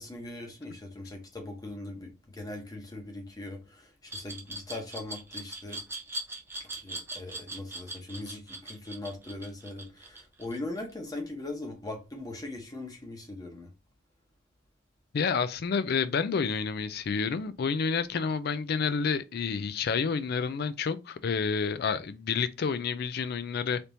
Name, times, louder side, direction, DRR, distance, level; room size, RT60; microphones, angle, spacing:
voice 1, 0.0-5.8 6.6-13.7, left 2 dB, 20° left, 0.8 m, -40 dB
Glass, 4.1-10.9, right 2 dB, 10° right, 0.6 m, -40 dB
voice 2, 15.1-23.8, left 5 dB, 50° left, 0.3 m, -29 dB
3.4 x 2.8 x 2.6 m
head